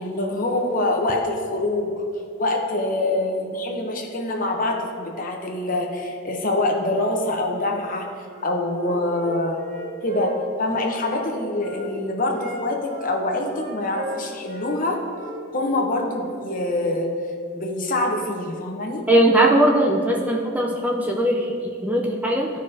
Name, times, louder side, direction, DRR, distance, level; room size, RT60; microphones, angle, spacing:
voice 1, 0.0-2.0 2.4-9.6 10.0-15.0 15.5-17.1 17.5-19.1, left 2 dB, 40° left, 2 dB, 0.9 m, -25 dB
Wind instrument woodwind instrument, 8.2-11.9 12.3-14.8 15.0-16.4, equal, 35° right, 1.7 m, -37 dB
voice 2, 19.1-22.5, right 1 dB, 10° right, -1 dB, 0.5 m, -19 dB
14.0 x 5.1 x 2.8 m, 2.5 s
head